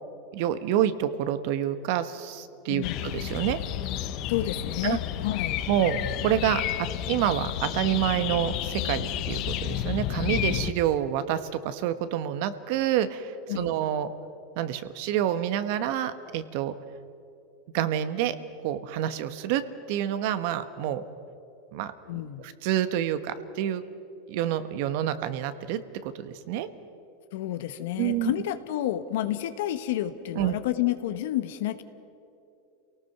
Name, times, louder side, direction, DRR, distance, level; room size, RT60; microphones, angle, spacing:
voice 1, 0.3-3.6 4.8-5.0 5.7-14.1 14.6-16.7 17.7-18.3 18.6-19.6 19.9-21.0 21.7-21.9 22.4-23.8 24.3-26.7 28.0-28.3 30.3-30.6, right 11 dB, 65° right, 11 dB, 1.2 m, -28 dB
voice 2, 2.7-3.1 4.3-5.6 13.5-13.7 22.1-22.4 27.3-31.8, left 13 dB, 75° left, 11 dB, 1.3 m, -30 dB
sound 1, 2.8-10.7, left 12 dB, 50° left, 0.9 m, -31 dB
28.5 x 18.5 x 6.0 m, 2.7 s
supercardioid pair, 120°, 0 cm